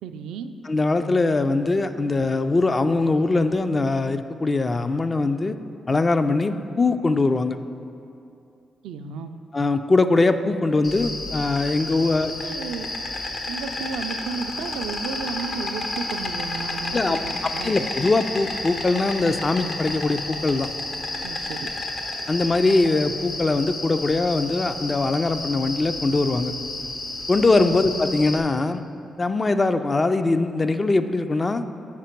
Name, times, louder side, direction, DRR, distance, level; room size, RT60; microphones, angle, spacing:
voice 1, 0.0-0.5 8.8-9.4 12.0-12.1 12.4-12.9 13.5-17.8 21.2-21.7 27.6-27.8, right 5 dB, 85° right, 7 dB, 0.3 m, -33 dB
voice 2, 0.7-5.6 5.9-7.6 9.5-12.3 16.9-17.2 17.6-20.7 22.3-26.5 27.3-28.8 29.2-31.6, left 3 dB, 35° left, 9 dB, 0.3 m, -21 dB
Insect, 10.8-28.4, left 2 dB, 60° left, 0.8 m, -31 dB
7.3 x 5.0 x 4.4 m, 2.7 s
supercardioid pair, 60°, 0 cm